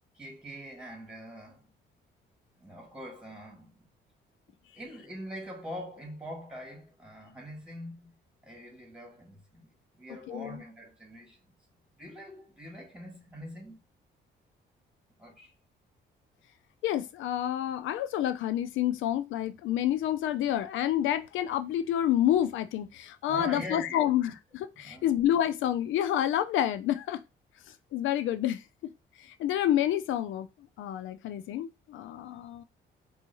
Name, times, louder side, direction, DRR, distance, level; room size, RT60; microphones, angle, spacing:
voice 1, 0.1-1.7 2.6-3.8 4.7-8.1 8.4-9.7 9.9-11.5 12.0-13.8 15.2-15.5 23.3-24.1 24.8-25.2, equal, 5° right, 2.4 m, -43 dB
voice 2, 10.3-10.6 16.8-27.2 27.7-28.6 29.2-30.5 30.8-32.6, left 11 dB, 80° left, 0.4 m, -28 dB
4.5 x 2.8 x 2.9 m
cardioid pair, 90°, 20 cm